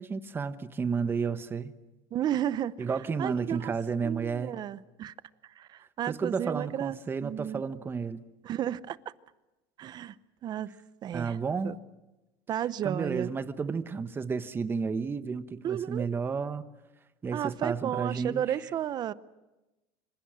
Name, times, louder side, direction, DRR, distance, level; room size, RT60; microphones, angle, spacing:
voice 1, 0.0-1.7 2.8-4.5 6.1-8.2 11.1-11.8 12.8-16.6 17.2-18.6, right 5 dB, 20° right, 11 dB, 1.1 m, -32 dB
voice 2, 2.1-2.9 3.2-3.7 4.0-5.1 5.6-7.6 8.4-9.0 9.8-10.2 10.4-11.4 11.6-11.8 12.5-13.3 15.6-16.1 17.3-19.1, right 10 dB, 40° right, 17 dB, 0.8 m, -33 dB
26.5 x 25.5 x 6.4 m, 1.0 s
supercardioid pair, 135°, 11 cm